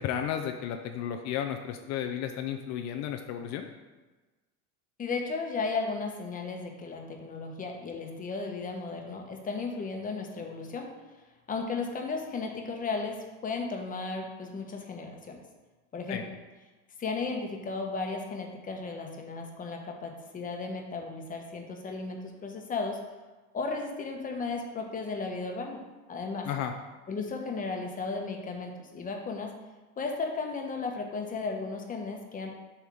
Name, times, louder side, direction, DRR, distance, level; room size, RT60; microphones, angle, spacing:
voice 1, 0.0-3.7 16.1-16.2 26.5-26.7, left 9 dB, 55° left, 5 dB, 0.6 m, -33 dB
voice 2, 5.0-10.9 11.5-15.4 15.9-16.2 17.0-23.0 23.5-25.8 26.1-26.5 27.1-29.5 30.0-32.5, left 4 dB, 25° left, 2 dB, 1.0 m, -35 dB
6.9 x 3.6 x 6.2 m, 1.2 s
cardioid pair, 140°, 34 cm